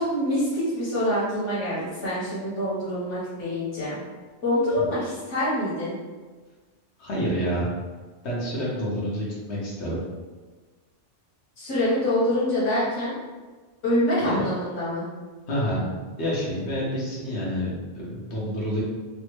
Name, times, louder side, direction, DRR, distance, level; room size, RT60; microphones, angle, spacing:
voice 1, 0.0-4.0 4.4-6.0 11.6-13.1 13.8-15.0, left 1 dB, 90° left, -10 dB, 1.4 m, -25 dB
voice 2, 7.0-7.7 8.2-10.0 14.2-14.4 15.5-15.9 16.2-18.8, equal, 65° left, -6 dB, 1.2 m, -28 dB
3.3 x 2.1 x 3.0 m, 1.4 s
omnidirectional pair, 1.2 m